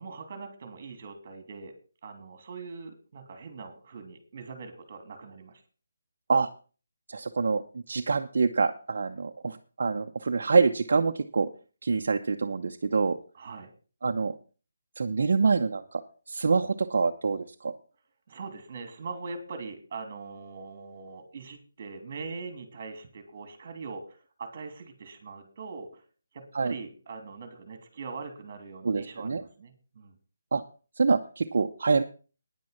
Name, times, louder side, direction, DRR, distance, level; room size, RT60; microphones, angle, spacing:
voice 1, 0.0-1.7 2.0-5.6 13.3-13.7 18.3-26.0 26.3-30.1, right 4 dB, 35° right, 7 dB, 3.1 m, -42 dB
voice 2, 7.1-11.5 11.8-13.2 14.0-14.3 15.0-16.0 16.3-17.7 26.5-26.7 28.8-29.4 30.5-30.6 31.0-32.0, right 4 dB, 60° right, 4 dB, 0.9 m, -26 dB
10.0 x 9.3 x 5.8 m, 0.37 s
hypercardioid pair, 170°, 0 cm